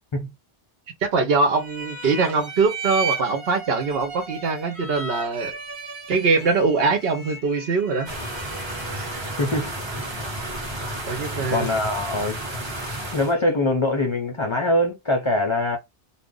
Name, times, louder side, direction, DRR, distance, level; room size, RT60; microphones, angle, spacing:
voice 1, 1.0-5.6 6.1-8.1 8.9-9.2 11.1-11.7, right 4 dB, 75° right, 0.9 m, -22 dB
sound 1, 1.5-9.6, right 4 dB, 55° right, 1.3 m, -35 dB
sound 2, 8.1-13.3, right 1 dB, 30° right, 0.9 m, -32 dB
voice 2, 9.4-9.7 11.5-12.4 13.1-15.8, left 1 dB, 45° left, 0.4 m, -23 dB
2.4 x 2.0 x 3.6 m
omnidirectional pair, 1.0 m